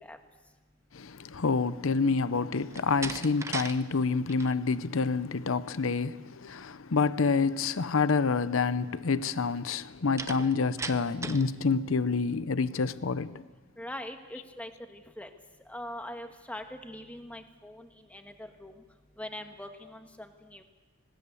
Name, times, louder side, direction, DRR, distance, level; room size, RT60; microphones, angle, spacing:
voice 1, 0.9-13.4, left 4 dB, 75° left, 0.7 m, -28 dB
Slam, 2.7-3.8 4.1-4.5 10.2-11.5, right 3 dB, 15° right, 0.7 m, -37 dB
voice 2, 13.8-15.3 15.7-18.7 19.2-20.6, left 1 dB, 5° left, 1.4 m, -42 dB
20.0 x 18.0 x 8.4 m
head